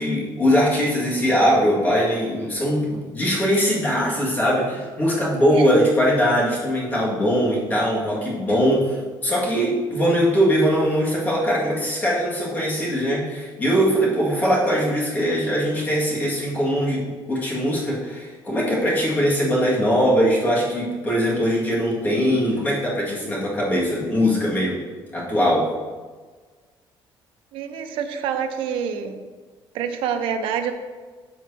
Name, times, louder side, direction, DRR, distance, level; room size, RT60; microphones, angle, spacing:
voice 1, 0.0-24.9 25.1-25.7, equal, 20° left, -5 dB, 1.9 m, -21 dB
voice 2, 27.5-29.1 29.7-30.7, right 7 dB, 90° right, 6 dB, 0.8 m, -26 dB
13.0 x 4.7 x 2.8 m, 1.4 s
cardioid pair, 180°, 9 cm